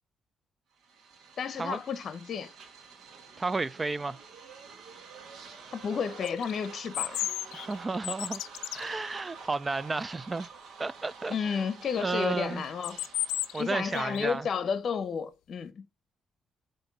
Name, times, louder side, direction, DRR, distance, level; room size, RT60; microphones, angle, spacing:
sound 1, 0.8-14.3, right 5 dB, 70° right, 1.1 m, -49 dB
voice 1, 1.4-2.5 5.7-7.3 11.3-13.0 13.6-15.8, left 6 dB, 55° left, 0.7 m, -32 dB
voice 2, 3.4-4.2 7.5-8.4 8.7-10.5 10.8-11.6 12.0-12.6 13.5-14.5, right 3 dB, 25° right, 0.4 m, -32 dB
sound 2, 6.2-8.9 12.7-13.7 13.9-14.4, left 13 dB, 90° left, 0.3 m, -33 dB
7.8 x 2.7 x 5.4 m
cardioid pair, 90°, 0 cm